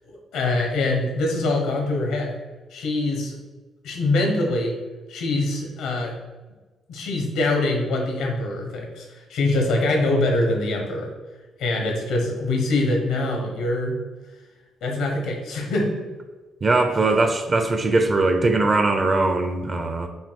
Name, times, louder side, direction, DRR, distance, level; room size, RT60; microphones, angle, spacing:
voice 1, 0.3-2.3 2.7-3.4 3.8-4.7 5.1-6.1 6.9-11.1 11.6-14.0 14.8-16.0, left 2 dB, 85° left, 1 dB, 1.1 m, -24 dB
voice 2, 16.6-20.1, right 3 dB, 35° right, 6 dB, 0.5 m, -20 dB
5.9 x 2.4 x 3.6 m, 1.3 s
cardioid pair, 90°, 0 cm